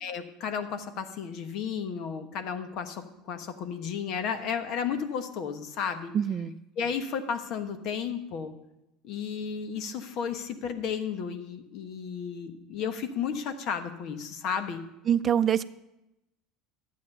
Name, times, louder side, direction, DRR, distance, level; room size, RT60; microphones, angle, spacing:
voice 1, 0.0-6.1 6.8-8.5 9.0-14.8, left 7 dB, 60° left, 8 dB, 1.2 m, -33 dB
voice 2, 6.1-6.6 15.1-15.6, right 9 dB, 35° right, 14 dB, 0.6 m, -24 dB
12.0 x 8.5 x 5.4 m, 0.90 s
hypercardioid pair, 85°, 0 cm